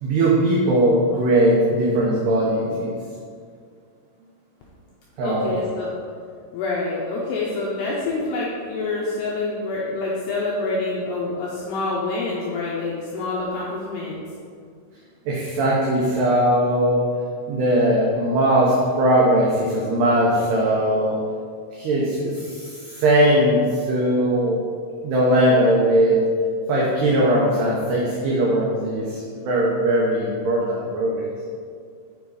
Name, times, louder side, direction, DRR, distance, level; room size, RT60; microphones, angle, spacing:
voice 1, 0.0-3.0 5.2-5.5 15.3-17.0 17.5-21.2 21.7-24.6 25.0-26.2 26.7-31.3, right 1 dB, 75° right, -4 dB, 2.5 m, -19 dB
voice 2, 5.2-5.9 6.5-14.2, left 3 dB, 85° left, -4 dB, 2.4 m, -27 dB
7.1 x 6.3 x 4.2 m, 2.2 s
omnidirectional pair, 5.7 m